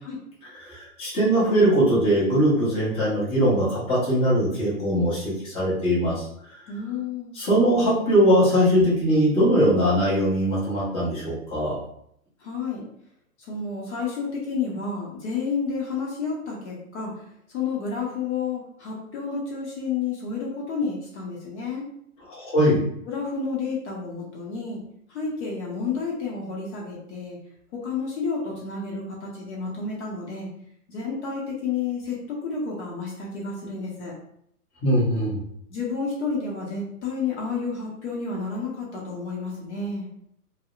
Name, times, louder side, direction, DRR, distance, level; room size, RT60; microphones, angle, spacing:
voice 1, 0.6-6.2 7.3-11.8 22.3-22.8 34.8-35.4, equal, 15° left, -9 dB, 0.8 m, -21 dB
voice 2, 6.7-7.3 12.4-12.8 13.4-17.2 17.5-21.8 23.1-24.8 25.1-27.4 27.7-30.5 30.9-34.1 35.7-40.1, left 5 dB, 50° left, -4 dB, 0.7 m, -30 dB
2.7 x 2.0 x 2.3 m, 0.72 s
hypercardioid pair, 135°, 45 cm